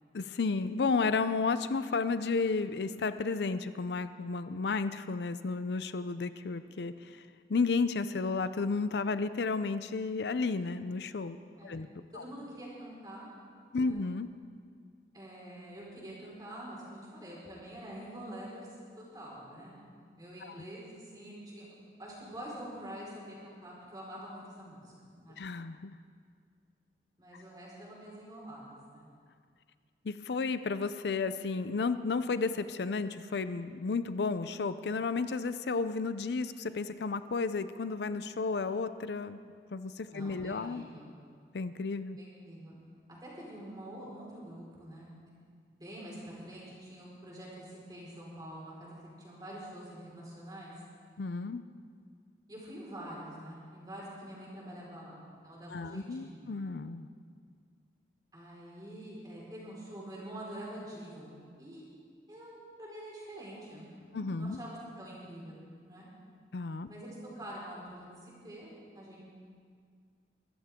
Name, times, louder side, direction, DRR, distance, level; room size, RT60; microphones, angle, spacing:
voice 1, 0.1-7.2 7.5-11.4 11.6-11.9 12.2-12.3 13.7-14.3 20.4-20.6 25.4-26.0 30.0-39.4 39.7-40.8 41.5-42.2 51.2-51.6 55.7-57.1 64.1-64.6 66.5-66.9, left 4 dB, 75° left, 12 dB, 0.5 m, -32 dB
voice 2, 12.1-13.3 13.8-14.0 15.1-18.7 19.0-19.9 20.2-21.7 22.0-25.4 27.2-29.1 40.1-41.1 42.2-42.8 43.2-45.1 45.8-50.7 52.5-56.5 58.3-61.8 62.3-66.1 66.9-69.2, right 1 dB, 20° right, -5 dB, 4.6 m, -46 dB
23.0 x 14.0 x 3.7 m, 2.1 s
head